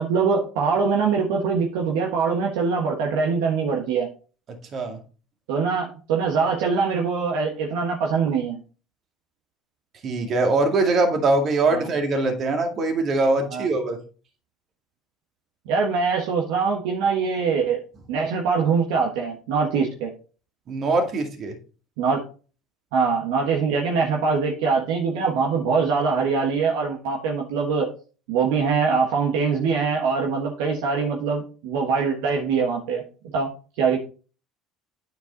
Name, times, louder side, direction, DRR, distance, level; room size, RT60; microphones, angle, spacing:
voice 1, 0.0-4.1 5.5-8.6 11.7-11.9 13.5-13.7 15.6-17.8 18.1-20.1 22.0-22.2 22.9-27.9 28.3-33.0 33.3-33.5 33.8-34.0, right 5 dB, 70° right, 0 dB, 1.4 m, -23 dB
voice 2, 4.5-5.0 10.0-14.0 20.7-21.6, right 3 dB, 45° right, 4 dB, 2.2 m, -22 dB
9.8 x 4.6 x 4.0 m, 0.37 s
hypercardioid pair, 70°, 0 cm